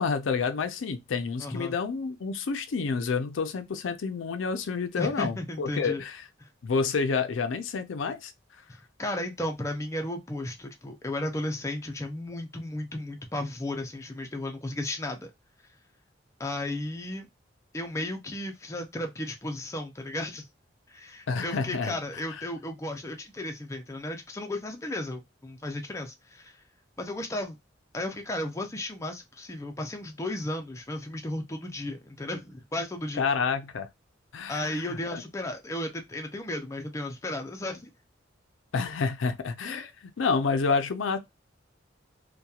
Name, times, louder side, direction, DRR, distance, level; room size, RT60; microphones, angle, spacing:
voice 1, 0.0-6.2 6.6-8.3 21.3-22.0 22.3-22.4 33.2-33.9 34.3-35.2 38.7-41.2, left 5 dB, 85° left, 0.5 m, -29 dB
voice 2, 1.4-1.8 5.0-6.0 6.4-6.5 9.0-15.3 16.4-17.3 17.7-20.5 20.9-26.6 27.0-27.6 27.9-33.3 34.5-37.9, left 1 dB, 15° left, 0.4 m, -34 dB
2.8 x 2.2 x 2.3 m
head